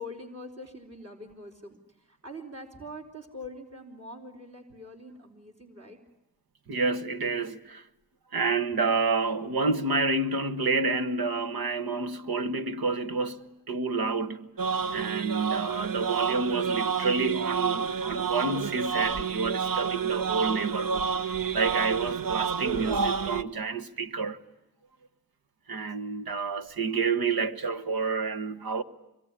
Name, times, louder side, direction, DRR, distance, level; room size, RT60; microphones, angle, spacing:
voice 1, 0.0-6.0, left 1 dB, 45° right, 4.5 m, -44 dB
voice 2, 6.7-7.8 8.3-14.5 14.9-21.1 21.5-24.4 25.7-28.8, right 4 dB, 90° right, 1.5 m, -29 dB
sound 1, 14.6-23.4, right 6 dB, 70° right, 1.1 m, -29 dB
25.5 x 23.0 x 10.0 m
cardioid pair, 50°, 35 cm